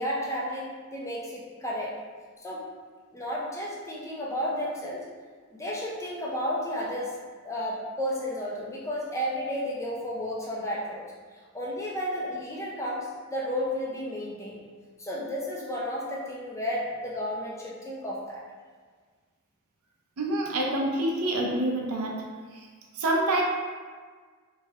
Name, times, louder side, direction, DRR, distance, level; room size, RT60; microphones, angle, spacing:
voice 1, 0.0-1.9 2.4-2.6 3.1-5.0 5.5-7.1 7.4-11.0 11.5-14.6 15.0-18.4, equal, 15° left, -4 dB, 0.4 m, -32 dB
voice 2, 20.2-22.1 23.0-23.4, right 1 dB, 75° right, -1 dB, 0.5 m, -26 dB
3.1 x 2.3 x 2.7 m, 1.5 s
head